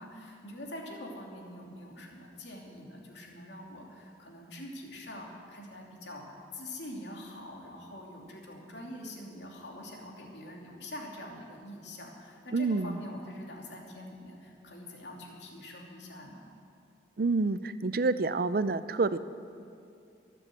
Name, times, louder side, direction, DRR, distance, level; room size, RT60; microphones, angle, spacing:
voice 1, 0.0-16.5, left 1 dB, 75° left, -1 dB, 2.9 m, -45 dB
voice 2, 12.5-13.0 17.2-19.2, right 3 dB, 55° right, 14 dB, 0.5 m, -28 dB
23.5 x 7.8 x 7.8 m, 2.5 s
head